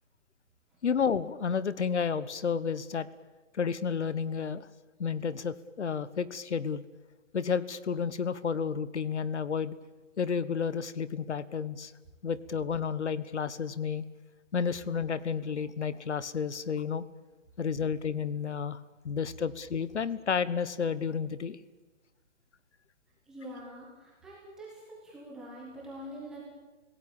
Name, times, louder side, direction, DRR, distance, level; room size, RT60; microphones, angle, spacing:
voice 1, 0.8-3.1 3.5-4.7 5.0-6.8 7.3-9.8 10.2-11.9 12.2-14.0 14.5-17.1 17.6-21.6, left 6 dB, 60° left, 17 dB, 1.3 m, -31 dB
voice 2, 23.3-26.4, equal, ahead, -5 dB, 1.0 m, -45 dB
28.0 x 17.0 x 8.9 m, 1.3 s
hypercardioid pair, 180°, 38 cm